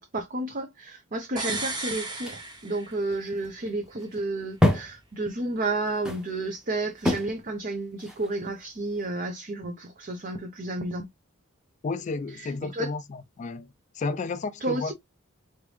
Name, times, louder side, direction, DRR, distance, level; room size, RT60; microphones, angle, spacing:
voice 1, 0.0-11.1 12.4-12.9 14.6-14.9, right 2 dB, 40° right, 0.7 m, -31 dB
sound 1, 1.4-9.1, left 1 dB, 5° right, 0.8 m, -30 dB
sound 2, 1.4-3.3 3.6-3.7, right 2 dB, 20° right, 1.1 m, -34 dB
voice 2, 11.8-13.7 13.9-14.9, left 3 dB, 35° left, 0.3 m, -32 dB
3.9 x 3.3 x 3.2 m
head